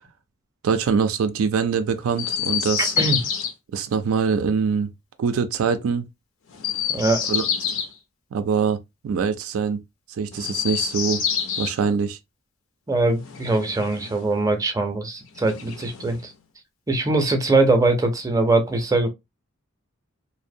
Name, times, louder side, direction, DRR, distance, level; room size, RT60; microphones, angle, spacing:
voice 1, 0.6-2.9 3.7-4.9 5.2-6.0 7.3-7.4 8.3-8.8 9.0-9.8 10.1-11.2 11.6-12.2, right 6 dB, 90° right, 0.4 m, -23 dB
Chirp tweet, 2.1-3.5 6.5-7.9 10.3-11.8 13.2-14.3 15.3-16.3, left 8 dB, 75° left, 0.5 m, -27 dB
voice 2, 6.9-7.2 12.9-16.3 16.9-19.1, right 2 dB, 15° right, 0.5 m, -21 dB
2.5 x 2.0 x 2.6 m
head